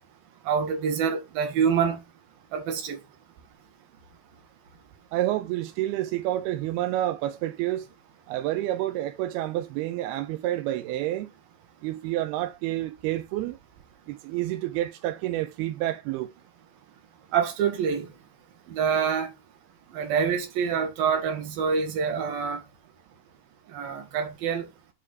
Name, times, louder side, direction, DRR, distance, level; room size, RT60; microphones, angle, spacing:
voice 1, 0.4-2.0 2.5-3.0 17.3-18.1 18.7-19.3 19.9-22.6 23.7-24.7, right 6 dB, 70° right, 3.4 m, -26 dB
voice 2, 5.1-7.9 8.3-11.3 11.8-13.6 14.1-16.3, right 14 dB, 90° right, 2.8 m, -29 dB
9.6 x 3.8 x 4.8 m
omnidirectional pair, 4.4 m